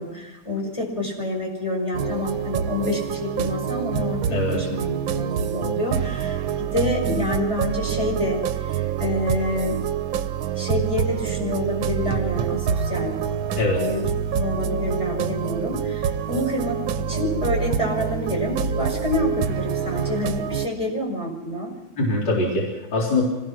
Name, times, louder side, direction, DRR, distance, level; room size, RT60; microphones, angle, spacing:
voice 1, 0.0-9.8 10.6-13.2 13.8-14.0 14.3-21.7, left 1 dB, 15° left, -1 dB, 5.8 m, -28 dB
sound 1, 1.9-20.7, right 8 dB, 80° right, 1.7 m, -26 dB
voice 2, 4.3-4.6 13.6-13.8 22.0-23.2, left 2 dB, 65° left, -3 dB, 4.4 m, -22 dB
25.5 x 19.0 x 6.0 m, 0.99 s
omnidirectional pair, 2.1 m